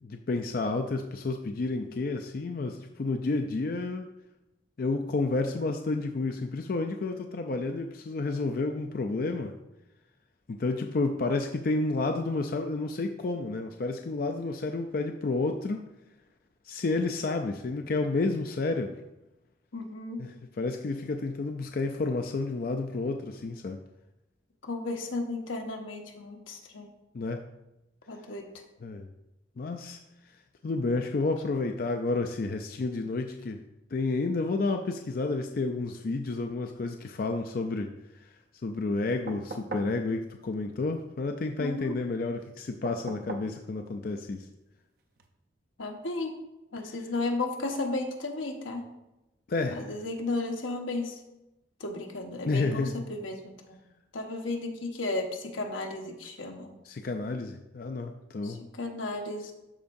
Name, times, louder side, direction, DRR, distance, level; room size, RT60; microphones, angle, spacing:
voice 1, 0.0-4.1 4.8-9.5 10.5-15.8 16.6-19.0 20.2-23.8 27.1-27.4 28.8-29.1 29.6-30.0 30.6-33.6 33.9-38.3 38.6-44.5 49.5-49.9 52.5-53.1 56.8-58.6, left 3 dB, 50° left, 5 dB, 0.4 m, -30 dB
voice 2, 19.7-20.2 24.6-26.9 28.1-28.5 41.6-41.9 45.8-46.3 46.7-48.9 49.8-51.1 51.8-53.8 54.1-56.7 58.4-59.5, left 2 dB, 90° left, 2 dB, 1.2 m, -34 dB
sound 1, 39.3-40.0 42.8-43.6 45.2-45.3, right 2 dB, 50° right, 0.6 m, -39 dB
12.0 x 4.7 x 2.6 m, 0.95 s
head